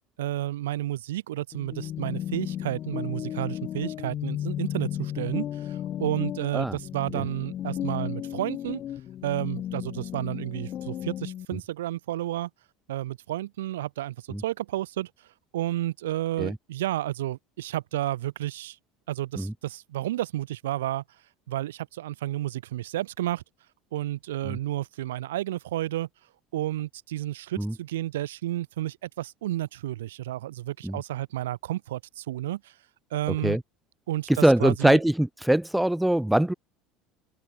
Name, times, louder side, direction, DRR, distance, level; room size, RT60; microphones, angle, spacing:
voice 1, 0.2-8.8 9.2-12.5 12.9-15.1 15.5-18.8 19.1-21.0 21.5-23.4 23.9-26.1 26.5-32.7 33.1-33.6 34.1-35.0, right 14 dB, 80° right, 1.5 m, -31 dB
sound 1, 1.5-11.5, left 11 dB, 45° left, 5.4 m, -34 dB
voice 2, 33.3-33.6 34.3-36.5, right 1 dB, 5° right, 0.8 m, -23 dB
hypercardioid pair, 70°, 0 cm